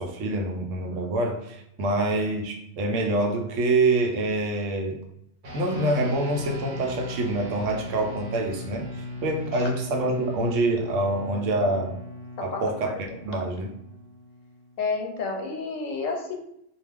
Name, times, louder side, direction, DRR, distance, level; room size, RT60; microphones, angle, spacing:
voice 1, 0.0-5.0 5.5-12.0 12.4-12.9 13.2-13.7, right 2 dB, 80° right, 2 dB, 1.0 m, -26 dB
sound 1, 5.4-15.1, left 2 dB, 55° right, 1.0 m, -38 dB
voice 2, 12.4-13.0 14.8-16.3, left 4 dB, 85° left, 2 dB, 1.0 m, -31 dB
2.3 x 2.2 x 3.3 m, 0.77 s
omnidirectional pair, 1.3 m